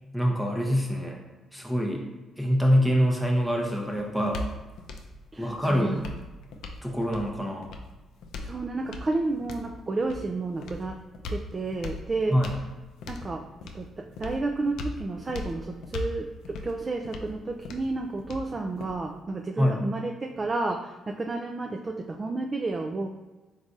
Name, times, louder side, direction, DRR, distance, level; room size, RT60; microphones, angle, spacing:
voice 1, 0.1-1.2 1.5-2.0 2.4-4.4 5.4-6.0 6.8-7.7 12.3-12.5 19.6-19.8, equal, 5° right, 0 dB, 0.7 m, -25 dB
sound 1, 3.2-19.2, left 2 dB, 80° left, 0.4 m, -40 dB
voice 2, 5.3-6.0 8.4-11.0 11.3-12.4 13.1-13.5 13.7-23.1, right 3 dB, 30° right, 3 dB, 0.3 m, -31 dB
4.0 x 3.8 x 2.4 m, 1.2 s
cardioid pair, 90°, 0 cm